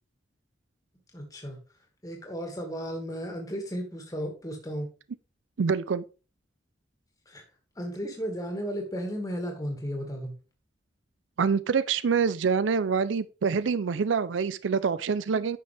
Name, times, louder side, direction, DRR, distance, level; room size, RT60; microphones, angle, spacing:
voice 1, 1.1-1.6 2.0-4.9 7.3-7.4 7.8-10.3, equal, 20° left, 2.2 m, -34 dB
voice 2, 5.6-6.0 11.4-15.6, right 5 dB, 85° right, 0.5 m, -26 dB
10.0 x 6.5 x 3.4 m
head